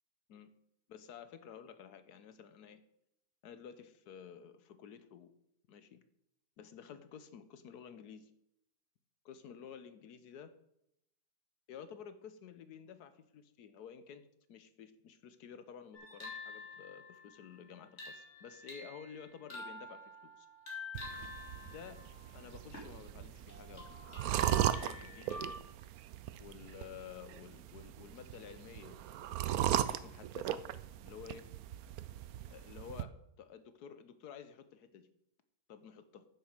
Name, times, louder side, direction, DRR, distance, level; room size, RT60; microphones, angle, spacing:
voice 1, 0.9-2.8 3.4-5.3 5.7-6.0 6.6-8.3 9.2-10.5 11.7-20.5 21.6-22.1 22.3-24.0 24.3-25.4 26.4-29.0 29.5-30.6 31.0-31.5 32.5-35.1 35.7-36.2, left 7 dB, 80° left, 11 dB, 1.4 m, -52 dB
sound 1, 15.9-23.0 23.5-25.6, left 3 dB, 45° left, 3.4 m, -48 dB
sound 2, 20.9-33.0, right 12 dB, 70° right, 1.0 m, -38 dB
9.7 x 6.5 x 6.5 m, 0.78 s
omnidirectional pair, 1.7 m